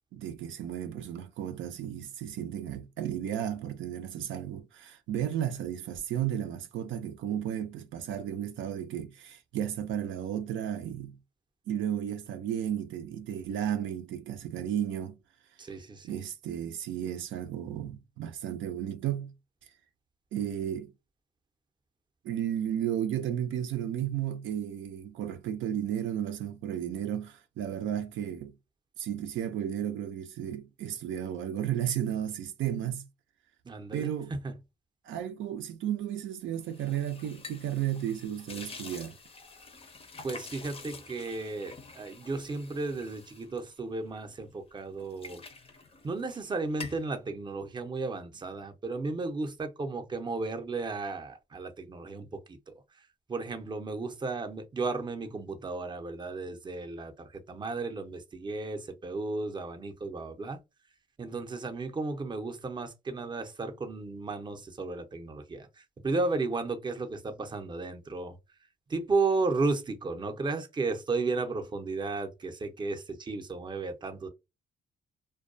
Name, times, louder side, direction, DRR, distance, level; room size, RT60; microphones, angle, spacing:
voice 1, 0.1-11.2 11.7-15.2 16.0-19.3 20.3-20.9 22.2-28.5 29.0-33.1 33.9-34.3 35.0-39.2, right 10 dB, 75° right, 0.5 m, -33 dB
voice 2, 15.6-16.2 33.6-34.6 40.2-45.4 46.0-52.7 53.3-60.6 61.2-68.4 68.9-74.3, right 3 dB, 25° right, 0.6 m, -34 dB
sound 1, 36.6-44.4 44.8-46.4 46.7-47.1, left 4 dB, 30° left, 0.5 m, -47 dB
2.2 x 2.2 x 2.5 m
cardioid pair, 90°, 20 cm